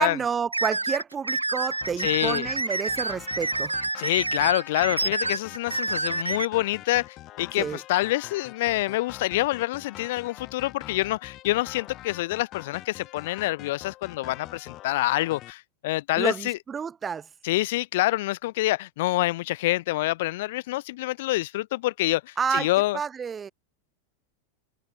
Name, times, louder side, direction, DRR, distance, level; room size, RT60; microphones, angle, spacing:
voice 1, 0.0-3.8 7.6-7.8 16.2-17.3 22.4-22.7 22.9-23.5, right 6 dB, 20° right, 1.1 m, -29 dB
sound 1, 0.5-6.5, right 2 dB, 80° right, 3.2 m, -28 dB
sound 2, 1.8-15.5, left 15 dB, 35° left, 4.1 m, -44 dB
voice 2, 2.0-2.5 4.0-16.6 17.4-23.0, left 18 dB, 50° left, 1.3 m, -26 dB
figure-of-eight pair, 90°, 0 cm